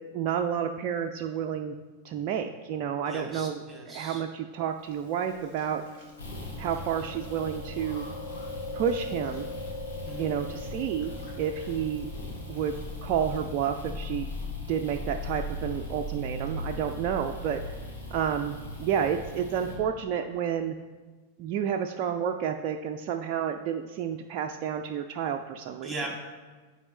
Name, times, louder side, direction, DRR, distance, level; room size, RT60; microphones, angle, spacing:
voice 1, 0.1-1.8 2.0-3.5 3.9-5.8 6.6-8.1 8.7-9.5 10.2-12.1 12.5-14.3 14.7-17.6 18.1-20.7 21.4-25.9, right 8 dB, 40° right, 4 dB, 0.3 m, -30 dB
voice 2, 3.1-4.2 10.0-10.3 25.8-26.2, right 2 dB, 5° right, -1 dB, 2.1 m, -38 dB
Chewing mastication, 4.8-13.8, left 2 dB, 45° left, 1.9 m, -42 dB
sound 1, 6.2-19.8, left 1 dB, 70° left, 2.3 m, -39 dB
10.5 x 4.3 x 3.0 m, 1.3 s
figure-of-eight pair, 90°, 0 cm